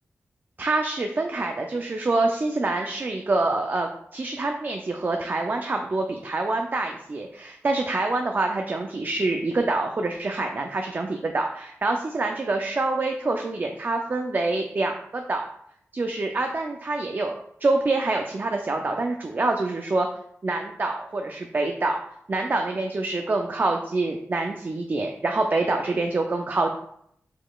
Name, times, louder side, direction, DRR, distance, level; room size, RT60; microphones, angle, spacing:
voice 1, 0.6-15.4 15.9-17.4 17.6-20.1 20.4-22.0 22.3-26.7, right 2 dB, 40° right, 3 dB, 0.4 m, -26 dB
5.0 x 3.9 x 2.3 m, 0.70 s
wide cardioid pair, 130°, 5 cm